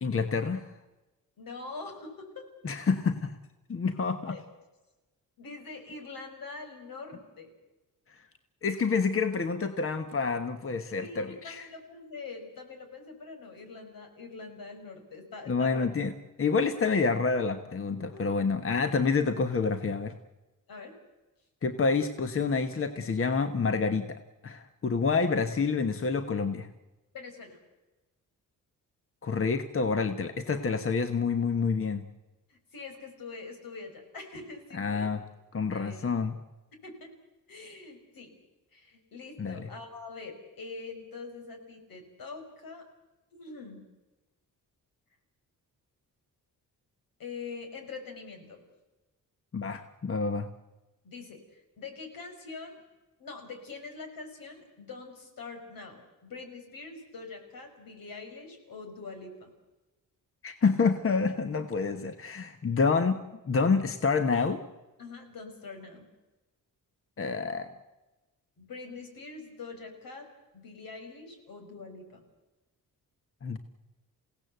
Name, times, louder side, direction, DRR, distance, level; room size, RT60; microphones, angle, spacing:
voice 1, 0.0-0.6 2.6-3.4 3.7-4.3 8.1-8.2 8.6-11.7 15.5-16.1 16.4-20.2 21.6-26.7 29.2-32.0 34.7-35.2 35.5-36.4 39.4-39.7 49.5-50.5 60.4-64.6 67.2-67.7 73.4-73.6, left 4 dB, 40° left, 8 dB, 1.3 m, -28 dB
voice 2, 1.4-2.4 4.3-4.4 5.4-7.5 11.0-15.9 18.1-18.3 20.7-20.9 27.1-27.6 32.5-35.1 35.7-36.2 36.8-37.1 37.5-38.3 38.7-42.9 43.3-43.8 47.2-48.6 51.0-52.8 53.2-59.5 64.4-64.6 65.0-66.1 68.6-70.3 70.5-72.2, left 4 dB, 80° left, 5 dB, 5.6 m, -44 dB
28.5 x 17.0 x 8.0 m, 1.1 s
wide cardioid pair, 135°, 34 cm